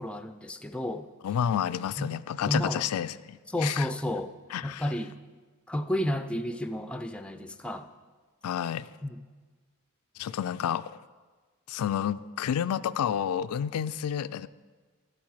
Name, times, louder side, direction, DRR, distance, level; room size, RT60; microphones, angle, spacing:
voice 1, 0.0-1.1 2.0-2.9 3.5-4.3 4.6-5.2 5.7-7.9 9.0-9.2, left 1 dB, 5° left, 0.4 m, -32 dB
voice 2, 1.2-3.9 4.5-4.8 8.4-8.9 10.2-10.9 11.7-14.5, left 9 dB, 80° left, 0.3 m, -30 dB
12.0 x 8.5 x 4.7 m
head